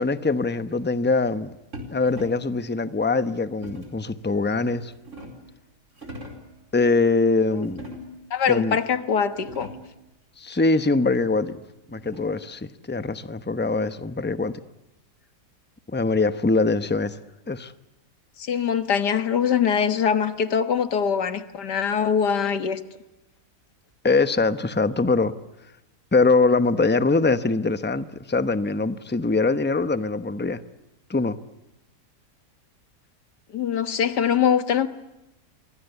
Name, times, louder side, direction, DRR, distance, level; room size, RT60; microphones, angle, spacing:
voice 1, 0.0-1.6 1.9-4.9 6.7-7.8 8.5-8.8 10.4-11.5 11.9-14.6 15.9-17.2 17.5-17.7 24.0-25.3 26.1-30.6 31.1-31.4, left 3 dB, 10° left, 0.6 m, -23 dB
sound 1, 1.7-2.6 3.6-4.1 4.7-5.5 5.9-6.5 7.6-8.3 8.9-9.0 9.2-10.0 11.4-12.5, equal, 45° right, 4.5 m, -41 dB
voice 2, 8.3-9.7 18.4-22.8 33.5-34.9, left 7 dB, 80° left, 2.0 m, -23 dB
28.5 x 24.0 x 8.2 m
omnidirectional pair, 1.8 m